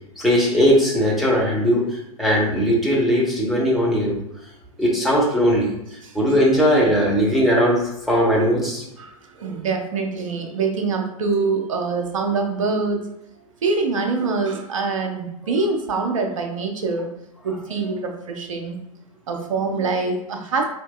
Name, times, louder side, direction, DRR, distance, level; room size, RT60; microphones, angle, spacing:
voice 1, 0.2-4.2 4.8-5.7 6.1-8.8 17.7-17.8, equal, ahead, -5 dB, 1.0 m, -19 dB
voice 2, 9.4-13.0 13.6-17.1 17.4-18.8 19.3-20.7, right 4 dB, 60° right, 3 dB, 0.7 m, -24 dB
4.3 x 2.6 x 2.3 m, 0.81 s
figure-of-eight pair, 95°, 19 cm